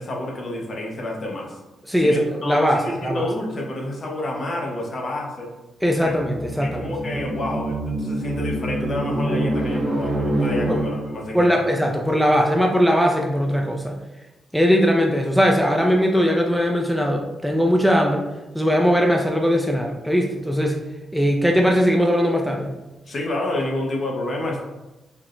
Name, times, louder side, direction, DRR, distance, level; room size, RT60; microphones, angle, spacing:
voice 1, 0.0-1.6 2.0-5.5 6.0-6.1 6.6-11.6 23.1-24.6, left 1 dB, 45° left, 0 dB, 0.8 m, -29 dB
voice 2, 1.9-3.2 5.8-6.9 10.7-10.8 11.3-14.0 14.5-18.3 18.5-20.8 21.1-22.7, equal, ahead, 1 dB, 0.4 m, -20 dB
sound 1, 5.8-11.4, right 1 dB, 45° right, 0.6 m, -26 dB
4.4 x 2.0 x 2.5 m, 1.0 s
cardioid pair, 75°, 0 cm